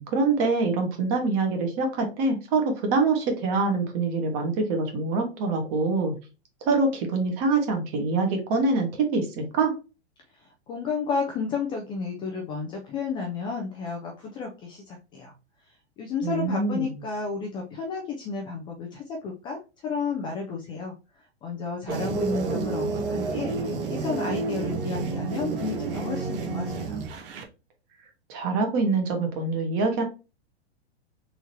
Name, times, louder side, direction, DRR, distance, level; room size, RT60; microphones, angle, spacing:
voice 1, 0.0-6.1 6.7-9.7 16.2-16.9 28.3-30.0, right 3 dB, 40° right, 4 dB, 1.2 m, -25 dB
voice 2, 10.3-15.3 15.7-27.0, left 5 dB, 15° left, 0 dB, 0.3 m, -32 dB
sound 1, 21.9-27.4, right 4 dB, 60° right, 1.0 m, -30 dB
3.7 x 2.8 x 3.0 m, 0.31 s
hypercardioid pair, 130°, 32 cm